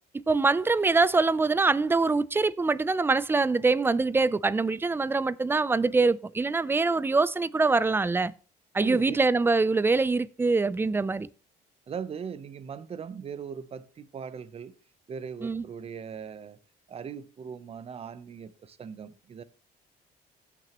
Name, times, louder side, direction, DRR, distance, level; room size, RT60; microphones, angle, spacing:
voice 1, 0.3-8.3 8.7-11.3 15.4-15.6, right 3 dB, 15° right, 0.4 m, -24 dB
voice 2, 8.8-9.2 11.9-14.7 15.1-16.6 16.9-19.4, right 7 dB, 35° right, 0.7 m, -39 dB
16.5 x 6.0 x 3.0 m
cardioid pair, 110°, 17 cm